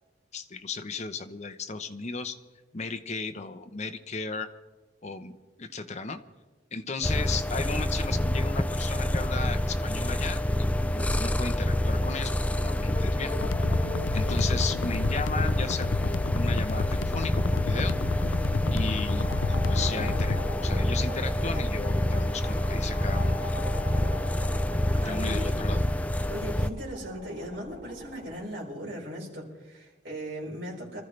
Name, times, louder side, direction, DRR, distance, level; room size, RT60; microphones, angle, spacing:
voice 1, 0.3-2.4 2.7-4.5 5.0-6.2 6.7-13.3 14.1-18.0 18.7-23.4 24.9-25.8, left 4 dB, 40° left, 8 dB, 0.9 m, -35 dB
sound 1, 7.0-26.7, left 1 dB, 10° left, 0.4 m, -27 dB
sound 2, 11.9-28.4, left 1 dB, 40° right, 6.4 m, -42 dB
sound 3, 13.4-20.4, left 5 dB, 80° left, 0.4 m, -33 dB
voice 2, 24.9-25.6 26.3-31.0, equal, 70° right, -4 dB, 4.9 m, -38 dB
24.5 x 14.0 x 3.3 m, 1.2 s
head